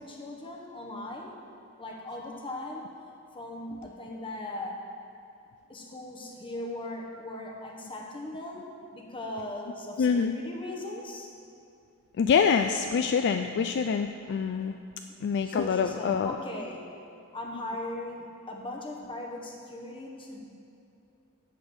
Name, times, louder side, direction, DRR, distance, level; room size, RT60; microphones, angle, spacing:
voice 1, 0.0-1.4 1.8-2.9 3.3-4.8 5.7-11.3 15.4-16.9 17.3-20.5, left 1 dB, 25° left, 0 dB, 1.2 m, -39 dB
voice 2, 10.0-10.3 12.2-14.8 15.2-16.3, left 6 dB, 55° left, 6 dB, 0.3 m, -25 dB
12.0 x 4.1 x 7.9 m, 2.6 s
head